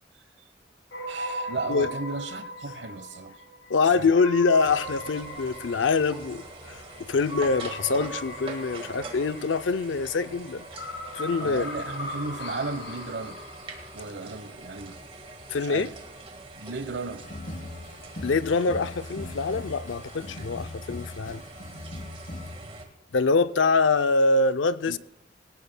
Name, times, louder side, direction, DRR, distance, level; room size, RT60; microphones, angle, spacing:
sound 1, 0.9-14.0, equal, 70° left, 6.3 m, -39 dB
voice 1, 1.1-3.4 3.9-4.1 11.4-13.4 13.9-15.0 15.6-16.0 16.6-17.3 24.9-25.0, right 3 dB, 75° right, 1.0 m, -35 dB
voice 2, 3.7-10.7 11.1-11.7 15.5-15.9 18.2-21.4 23.1-25.0, left 4 dB, 90° left, 0.5 m, -24 dB
sound 2, 4.6-22.9, right 2 dB, 30° right, 1.7 m, -44 dB
sound 3, 17.2-22.6, left 1 dB, 40° left, 1.0 m, -40 dB
18.5 x 18.0 x 2.2 m
head